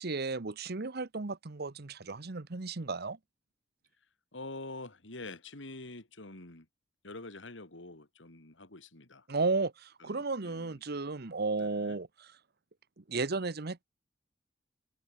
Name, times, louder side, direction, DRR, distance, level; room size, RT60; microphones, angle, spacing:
voice 1, 0.0-3.2 9.3-12.3 13.0-13.8, right 3 dB, 60° right, 1.0 m, -34 dB
voice 2, 4.3-6.7 7.0-9.3 10.0-10.8 11.6-12.0, left 2 dB, 90° left, 3.1 m, -46 dB
head